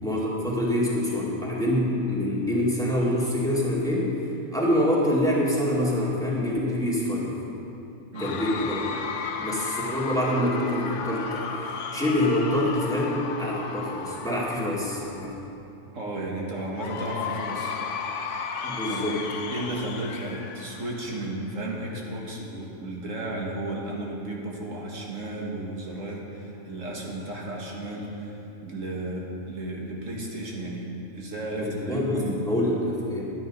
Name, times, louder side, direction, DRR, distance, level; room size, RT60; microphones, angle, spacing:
voice 1, 0.0-4.2 4.5-7.3 8.2-8.8 9.4-15.4 18.6-19.2 31.6-33.3, left 1 dB, 5° left, -6 dB, 2.1 m, -26 dB
Cheering / Crowd, 8.1-15.5 16.7-21.5, left 6 dB, 70° left, 1.0 m, -34 dB
voice 2, 15.9-17.8 18.9-19.2 19.5-30.9 31.1-32.5, right 1 dB, 85° right, -2 dB, 2.0 m, -34 dB
11.5 x 9.9 x 5.3 m, 2.8 s
omnidirectional pair, 1.3 m